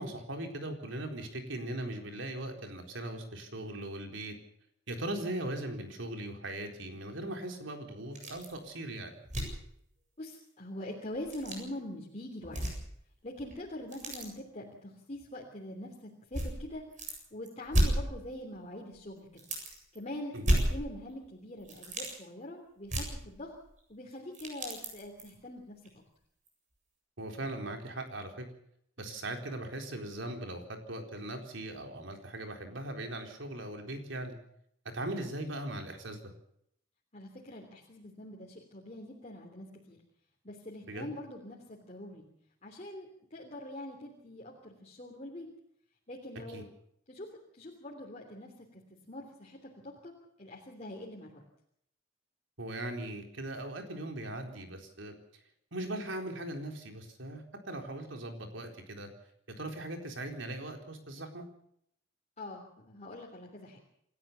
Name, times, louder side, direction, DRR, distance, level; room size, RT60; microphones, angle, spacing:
voice 1, 0.0-4.3 4.9-9.1 20.3-20.6 27.2-28.5 29.0-34.3 34.8-36.3 40.9-41.1 46.5-46.6 52.6-55.1 55.7-59.1 59.6-61.5, right 1 dB, 75° right, 4 dB, 4.2 m, -39 dB
sound 1, 8.1-8.6 8.9-9.0 9.3-9.7 11.2-11.6 12.4-13.1 13.4-14.3 15.2-15.3 16.3-17.2 17.5-18.6 18.9-19.0 19.4-20.0 20.4-21.3 21.6-22.1 22.9-23.8 24.1-25.3 25.9-26.0 26.5-26.6, right 1 dB, 40° right, 7.7 m, -32 dB
voice 2, 10.2-12.7 13.2-16.8 17.3-19.4 19.9-23.5 23.9-26.0 37.1-40.0 40.4-42.3 42.6-45.5 46.1-46.7 47.1-47.3 47.5-48.8 49.1-50.1 50.4-51.4 62.4-63.8, left 1 dB, 35° left, -1 dB, 3.2 m, -44 dB
28.0 x 13.5 x 6.9 m, 0.71 s
head